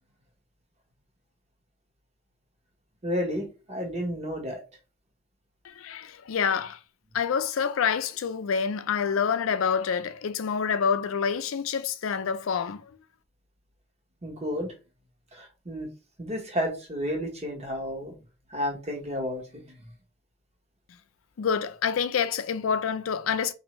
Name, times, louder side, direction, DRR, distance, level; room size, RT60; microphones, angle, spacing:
voice 1, 3.0-4.6 14.2-14.7 15.3-15.9 16.2-18.1 18.5-19.7, equal, 35° right, 1.1 m, -31 dB
voice 2, 5.6-6.8 7.1-12.9 21.4-23.5, left 6 dB, 75° left, 0.4 m, -27 dB
4.1 x 2.6 x 3.0 m
head